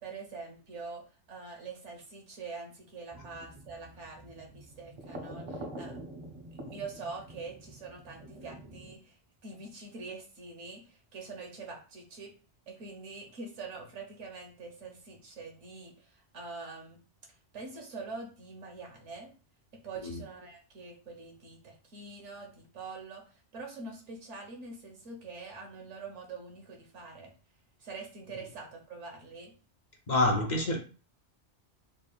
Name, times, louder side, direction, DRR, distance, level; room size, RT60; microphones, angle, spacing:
voice 1, 0.0-6.0 6.6-9.2 9.4-12.3 12.7-17.0 17.5-19.3 19.8-27.3 27.8-29.5, right 4 dB, 85° right, 2 dB, 1.3 m, -44 dB
sound 1, 3.1-8.9, right 1 dB, 40° right, 0.4 m, -46 dB
voice 2, 30.1-30.8, left 2 dB, 50° left, 1 dB, 0.6 m, -27 dB
3.8 x 3.3 x 2.3 m, 0.36 s
omnidirectional pair, 1.2 m